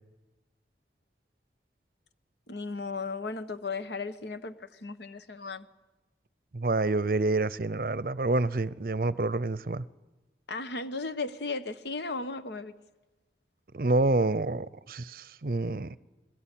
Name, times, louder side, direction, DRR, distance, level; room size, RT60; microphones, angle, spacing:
voice 1, 2.5-5.7 10.5-12.7, left 3 dB, 75° left, 1.1 m, -35 dB
voice 2, 6.5-9.8 13.7-16.0, right 2 dB, 55° right, 0.6 m, -28 dB
21.5 x 17.0 x 9.0 m
head